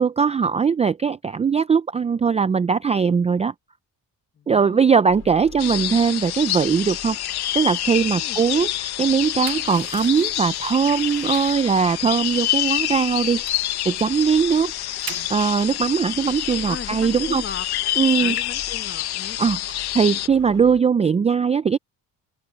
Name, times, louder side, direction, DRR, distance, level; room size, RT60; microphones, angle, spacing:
voice 1, 0.0-3.5 4.5-14.7 15.3-17.4 18.0-18.4 19.4-21.8, right 6 dB, 20° right, 0.3 m, -20 dB
voice 2, 4.4-4.8 8.1-8.4 16.7-17.7 18.2-19.4, left 6 dB, 30° left, 1.2 m, -37 dB
sound 1, 5.1-20.8, left 8 dB, 50° left, 5.3 m, -46 dB
sound 2, 5.6-20.3, left 14 dB, 70° left, 1.3 m, -27 dB
sound 3, 9.2-11.7 12.0-13.7 14.1-14.3 14.6-15.6, right 14 dB, 60° right, 0.9 m, -41 dB
open air
cardioid pair, 120°, 40 cm